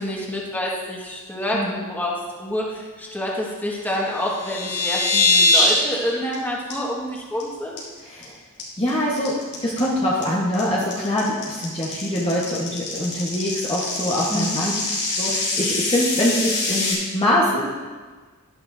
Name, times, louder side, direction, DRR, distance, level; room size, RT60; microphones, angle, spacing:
voice 1, 0.0-7.8 14.3-14.6, left 1 dB, 10° left, -4 dB, 1.7 m, -27 dB
sound 1, 4.1-5.8 6.1-6.3 6.7-6.8 7.2-7.4 7.8-8.2 8.6-16.9, left 2 dB, 90° left, 3.6 m, -23 dB
voice 2, 8.0-8.4 8.8-14.7 15.2-17.7, left 1 dB, 25° left, -5 dB, 1.2 m, -24 dB
12.0 x 11.0 x 2.7 m, 1.4 s
head